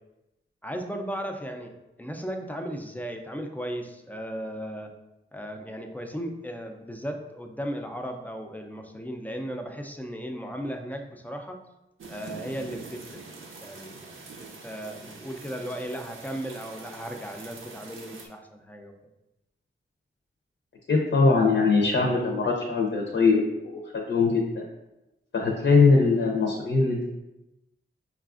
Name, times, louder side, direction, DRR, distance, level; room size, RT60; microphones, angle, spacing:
voice 1, 0.6-4.9 5.3-11.6 12.1-13.2 13.6-14.0 14.4-18.9, equal, 10° left, 4 dB, 0.4 m, -36 dB
sound 1, 12.0-18.3, right 3 dB, 75° right, 0.5 m, -44 dB
voice 2, 20.9-24.6 25.3-27.0, left 4 dB, 75° left, -1 dB, 0.6 m, -22 dB
5.5 x 2.4 x 2.4 m, 0.95 s
wide cardioid pair, 105°, 21 cm